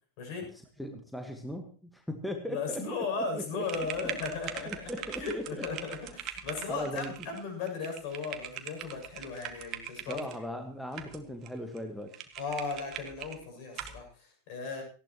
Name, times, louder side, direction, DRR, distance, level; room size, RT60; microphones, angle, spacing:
voice 1, 0.2-0.5 2.5-10.2 12.4-14.8, left 4 dB, 45° left, 3 dB, 7.4 m, -36 dB
voice 2, 0.8-3.0 3.3-4.1 4.7-5.6 6.5-7.1 10.1-12.2, equal, ahead, 5 dB, 1.5 m, -38 dB
sound 1, 3.6-10.4 10.9-11.5 11.8-11.9 12.1-13.4 13.7-14.0, right 10 dB, 35° right, 1.7 m, -42 dB
18.5 x 15.5 x 3.1 m, 0.40 s
figure-of-eight pair, 90°, 0 cm